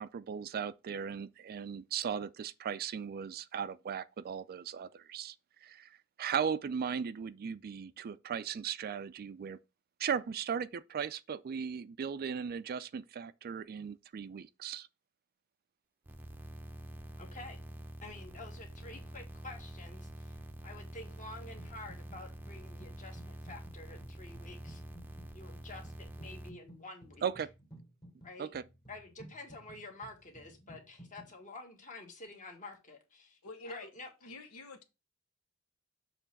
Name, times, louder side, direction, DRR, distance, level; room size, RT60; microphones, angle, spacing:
voice 1, 0.0-5.3 5.6-5.9 6.2-9.6 10.0-14.9 27.2-27.5 28.4-28.6, right 7 dB, 45° right, 0.3 m, -37 dB
sound 1, 16.0-26.5, right 1 dB, 10° right, 0.6 m, -47 dB
voice 2, 17.2-17.6 18.0-20.4 20.6-24.8 25.3-27.3 28.2-28.5 28.9-33.4 33.6-34.1, left 2 dB, 35° left, 1.7 m, -49 dB
sound 2, 21.6-22.2 22.5-31.3, right 1 dB, 20° left, 1.3 m, -55 dB
voice 3, 33.4-33.9 34.2-34.8, left 2 dB, 80° left, 1.0 m, -47 dB
6.8 x 3.2 x 5.9 m
head